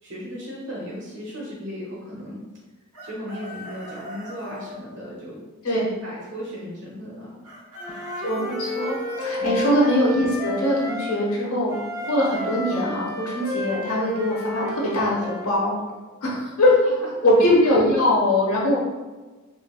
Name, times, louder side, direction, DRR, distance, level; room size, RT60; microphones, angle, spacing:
voice 1, 0.0-2.4 3.0-5.4 5.7-7.4 9.4-9.6 16.6-16.7 17.2-17.3, equal, 55° right, -4 dB, 0.8 m, -36 dB
Chicken rooster, 2.9-4.8 7.4-9.2, equal, 85° right, 0.8 m, -40 dB
Wind instrument woodwind instrument, 7.8-11.2 11.7-15.5, equal, 15° right, 0.4 m, -31 dB
voice 2, 8.2-11.7 12.0-15.8 16.2-16.7 17.2-18.8, left 1 dB, 75° left, -4 dB, 1.0 m, -21 dB
5.0 x 2.2 x 2.3 m, 1.3 s
head